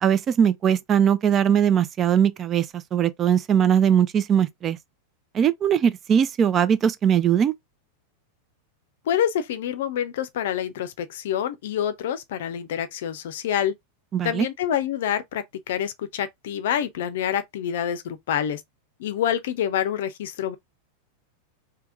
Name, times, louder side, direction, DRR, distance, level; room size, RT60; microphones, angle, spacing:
voice 1, 0.0-4.8 5.3-7.5 14.1-14.5, right 8 dB, 25° right, 0.5 m, -20 dB
voice 2, 9.1-13.7 14.2-18.6 19.0-20.6, left 9 dB, 55° left, 0.6 m, -27 dB
3.5 x 2.9 x 3.6 m
figure-of-eight pair, 90°, 0 cm